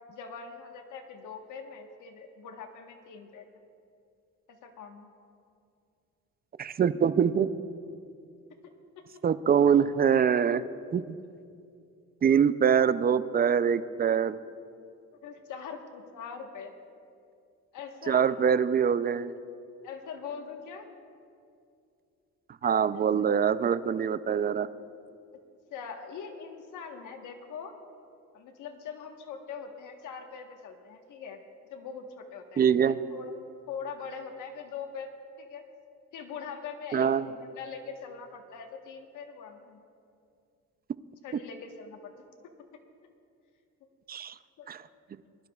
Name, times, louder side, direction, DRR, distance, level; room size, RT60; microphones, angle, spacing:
voice 1, 0.1-3.6 4.5-5.1 8.6-8.7 9.1-9.2 15.2-16.7 17.7-18.3 19.8-20.9 22.9-23.2 25.7-27.7 28.3-31.4 31.7-33.3 33.7-35.1 35.4-35.6 36.1-39.8 41.2-42.1 44.6-44.7, left 6 dB, 85° left, 4 dB, 1.3 m, -42 dB
voice 2, 6.6-7.5 9.2-10.6 10.9-11.2 12.2-14.4 18.1-19.3 22.6-24.7 32.6-33.0 36.9-37.2 44.1-44.3 44.7-44.8, right 7 dB, 30° right, 14 dB, 0.4 m, -24 dB
22.0 x 12.0 x 2.3 m, 2.4 s
cardioid pair, 90°, 30 cm